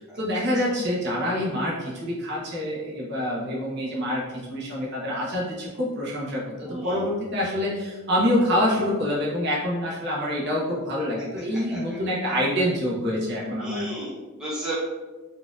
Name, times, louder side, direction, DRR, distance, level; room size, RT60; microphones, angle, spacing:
voice 1, 0.0-13.9, equal, 50° right, -6 dB, 0.9 m, -26 dB
voice 2, 6.7-7.0 11.7-11.8 13.6-14.7, right 1 dB, 5° right, -9 dB, 0.6 m, -33 dB
4.1 x 2.6 x 2.4 m, 1.3 s
head